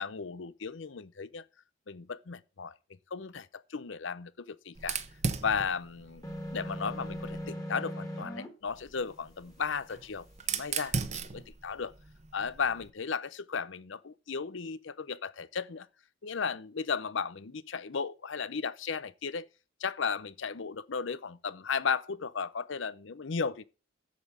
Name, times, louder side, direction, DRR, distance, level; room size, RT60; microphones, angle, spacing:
voice 1, 0.0-1.4 1.9-2.7 3.1-5.0 5.4-6.2 6.5-11.9 12.3-15.9 16.2-19.5 19.8-23.6, left 5 dB, 65° left, 0.7 m, -35 dB
Fire, 4.8-7.5 8.7-12.9, right 5 dB, 35° right, 1.0 m, -38 dB
sound 1, 6.2-8.5, equal, 20° left, 2.2 m, -38 dB
8.3 x 7.5 x 8.0 m
head